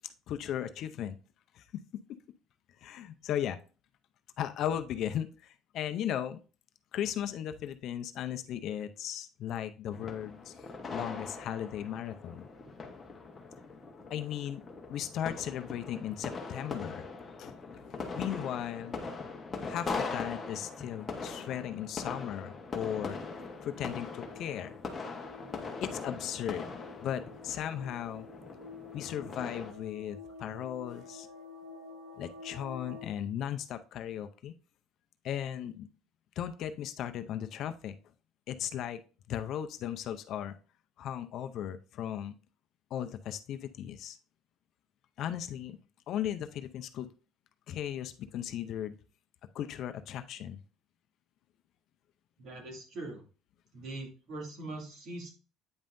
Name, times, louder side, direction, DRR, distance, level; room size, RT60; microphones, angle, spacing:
voice 1, 0.3-1.2 1.5-1.8 2.1-2.2 2.8-3.6 4.4-6.4 6.9-10.5 10.9-12.5 14.1-14.6 14.9-17.1 17.4-19.0 19.6-23.2 23.6-24.7 25.8-26.7 27.0-28.3 28.9-31.3 32.2-34.5 35.2-35.9 36.4-38.0 38.5-39.0 39.3-40.5 41.0-42.3 42.9-44.2 45.2-45.8 46.1-47.1 47.7-48.9 49.5-50.6, left 10 dB, 50° left, 9 dB, 0.6 m, -36 dB
sound 1, 9.9-29.7, left 4 dB, 20° left, 1.1 m, -41 dB
sound 2, 23.1-33.1, left 4 dB, 90° right, 1.9 m, -50 dB
voice 2, 52.4-53.2 53.7-55.3, right 2 dB, 50° right, 1 dB, 2.4 m, -42 dB
8.8 x 5.4 x 2.6 m, 0.34 s
cardioid pair, 160°, 0 cm